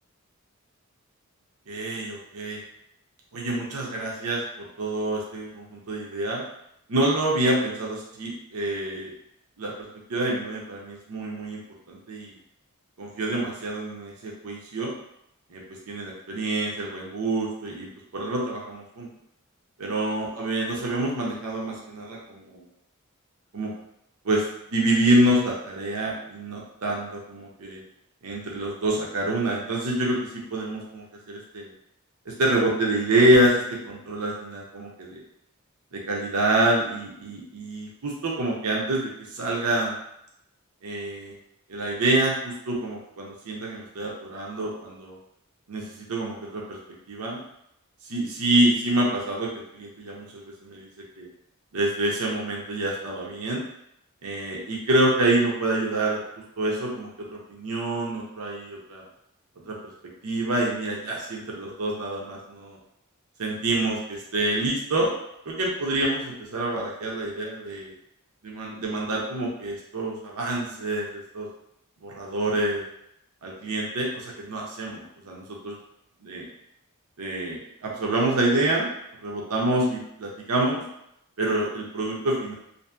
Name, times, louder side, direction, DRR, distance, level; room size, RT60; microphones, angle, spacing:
voice 1, 1.7-2.6 3.3-6.4 6.9-9.1 9.6-9.7 10.1-11.6 11.9-12.3 13.0-14.9 15.5-19.1 19.8-22.6 23.5-23.7 24.2-24.4 24.7-27.8 28.2-31.7 32.3-35.2 35.9-39.9 40.8-41.3 41.7-45.2 45.7-45.8 46.1-46.8 47.1-47.4 48.1-50.9 51.2-51.3 51.7-53.6 54.2-56.2 56.6-59.0 59.7-59.8 60.2-62.8 63.4-65.1 65.5-67.9 68.4-71.5 72.0-72.8 73.4-75.7 76.2-76.5 77.2-78.9 79.2-80.8 81.4-82.5, right 1 dB, 85° right, -2 dB, 0.6 m, -27 dB
2.7 x 2.5 x 2.3 m, 0.79 s
head